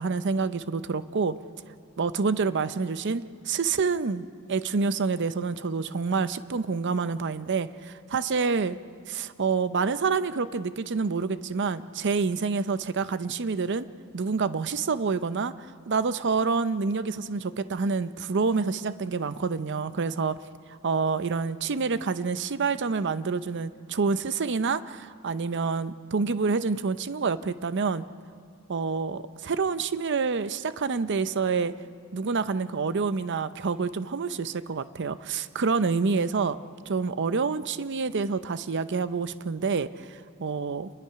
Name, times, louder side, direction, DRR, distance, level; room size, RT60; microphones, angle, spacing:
voice 1, 0.0-1.4 2.0-8.8 9.1-13.9 14.1-15.5 15.9-20.4 20.8-28.1 28.7-31.7 32.1-36.6 36.9-40.9, right 4 dB, 55° right, 13 dB, 0.6 m, -27 dB
28.0 x 21.0 x 5.8 m, 2.2 s
head